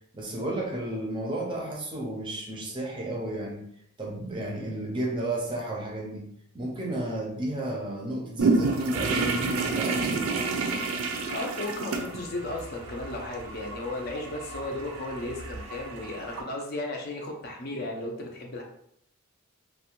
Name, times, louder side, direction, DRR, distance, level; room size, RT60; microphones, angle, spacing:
voice 1, 0.1-3.7 4.0-6.3 6.5-10.2, right 1 dB, 25° right, -1 dB, 0.5 m, -32 dB
sound 1, 8.4-16.4, right 3 dB, 75° right, 0.4 m, -30 dB
voice 2, 11.3-18.6, left 2 dB, 45° left, 1 dB, 0.5 m, -35 dB
2.5 x 2.1 x 2.9 m, 0.72 s
head